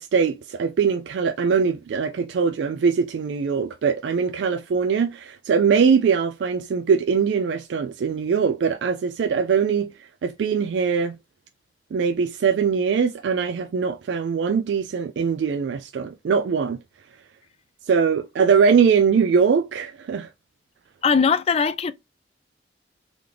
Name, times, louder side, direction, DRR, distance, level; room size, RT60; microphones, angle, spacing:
voice 1, 0.0-11.2 11.9-16.8 17.9-20.3, right 6 dB, 85° right, 0.3 m, -22 dB
voice 2, 21.0-21.9, left 5 dB, 35° left, 0.3 m, -20 dB
3.7 x 3.1 x 3.3 m
head